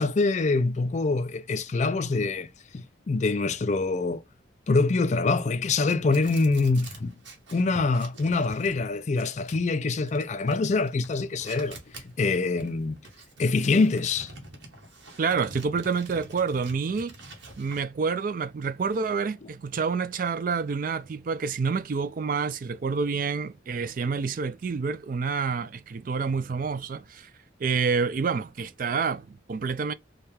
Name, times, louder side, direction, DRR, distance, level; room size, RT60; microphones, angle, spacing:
voice 1, 0.0-4.2 4.7-7.1 7.5-11.8 12.0-13.0 13.4-14.3, left 3 dB, 35° left, 0.3 m, -25 dB
sound 1, 6.1-17.8, right 2 dB, 70° right, 1.4 m, -47 dB
voice 2, 15.2-17.1 17.6-27.3 27.6-29.9, right 5 dB, 45° right, 0.3 m, -28 dB
4.5 x 2.3 x 3.3 m
head